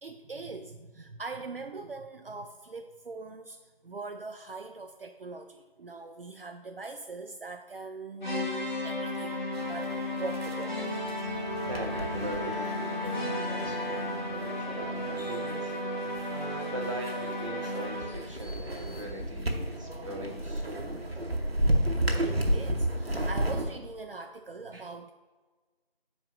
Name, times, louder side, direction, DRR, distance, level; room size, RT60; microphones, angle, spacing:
voice 1, 0.0-3.6 3.8-10.8 16.2-16.3 22.2-25.1, right 3 dB, 70° right, 6 dB, 0.6 m, -41 dB
sound 1, 8.2-18.3, left 1 dB, 50° left, 1.6 m, -34 dB
sound 2, 9.5-23.8, right 1 dB, 90° right, 1.3 m, -33 dB
Bowed string instrument, 10.8-14.9, left 4 dB, 25° left, 2.4 m, -40 dB
voice 2, 11.6-15.7 16.3-21.3, equal, 35° right, -2 dB, 1.2 m, -41 dB
13.0 x 4.5 x 2.6 m, 1.3 s
figure-of-eight pair, 175°, 29 cm